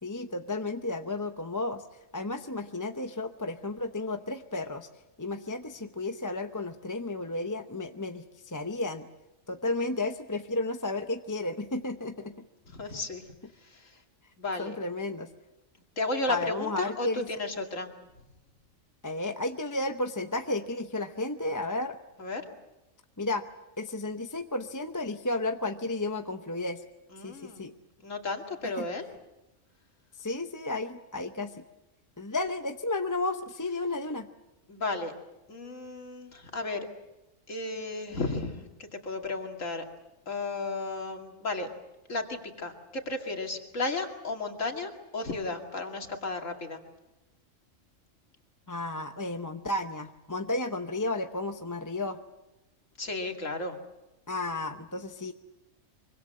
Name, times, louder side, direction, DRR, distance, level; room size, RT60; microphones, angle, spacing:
voice 1, 0.0-1.8 2.1-4.9 5.2-9.1 9.5-12.3 14.6-15.3 16.3-17.3 19.0-22.0 23.2-23.5 23.8-26.8 27.2-27.7 28.8-28.9 30.2-31.6 32.2-34.3 48.7-52.2 54.3-55.3, left 2 dB, 20° left, 7 dB, 0.7 m, -33 dB
voice 2, 12.7-13.2 13.6-14.0 14.4-14.8 16.0-17.9 22.2-22.4 27.1-27.6 28.0-29.1 34.7-35.1 35.5-36.9 37.5-39.8 40.3-41.7 42.1-46.8 53.0-53.8, left 2 dB, 75° left, 3 dB, 2.8 m, -34 dB
24.5 x 24.0 x 7.7 m, 0.98 s
omnidirectional pair, 1.3 m